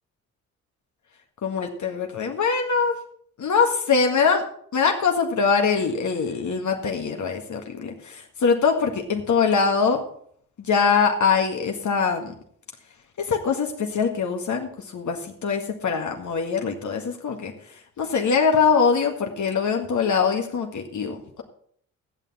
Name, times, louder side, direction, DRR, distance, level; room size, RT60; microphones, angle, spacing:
voice 1, 1.4-3.0 3.4-4.4 4.7-10.0 10.6-12.3 13.2-17.5 18.0-21.4, left 5 dB, 45° left, 2 dB, 1.8 m, -23 dB
15.0 x 9.1 x 4.2 m, 0.62 s
figure-of-eight pair, 45°, 42 cm